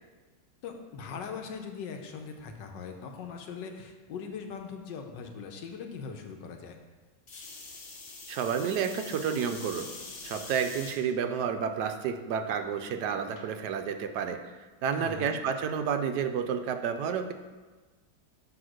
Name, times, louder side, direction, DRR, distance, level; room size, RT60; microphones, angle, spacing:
voice 1, 0.6-6.8 14.8-15.4, left 5 dB, 85° left, 4 dB, 1.5 m, -40 dB
sound 1, 7.3-11.0 11.6-12.1 13.4-13.5, left 3 dB, 45° left, 1.2 m, -44 dB
voice 2, 8.3-9.9 10.2-14.4 14.8-17.3, right 7 dB, 75° right, 7 dB, 1.1 m, -30 dB
6.0 x 5.0 x 6.4 m, 1.3 s
omnidirectional pair, 1.9 m